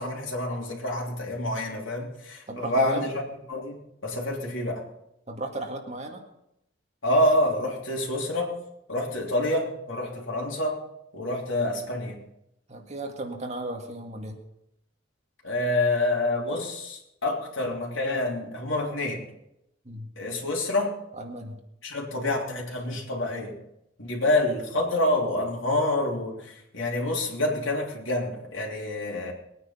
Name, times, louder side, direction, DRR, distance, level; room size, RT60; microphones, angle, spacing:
voice 1, 0.0-3.2 3.5-4.8 7.0-8.5 8.9-10.8 11.1-12.2 15.4-19.3 20.2-21.0 21.8-23.6 24.0-29.3, left 1 dB, 75° left, -2 dB, 3.3 m, -27 dB
voice 2, 2.5-3.1 5.3-6.2 12.7-14.4 19.8-20.1 21.2-21.6 22.9-23.1, right 2 dB, 35° right, 2 dB, 2.1 m, -35 dB
20.5 x 9.4 x 5.7 m, 0.81 s
head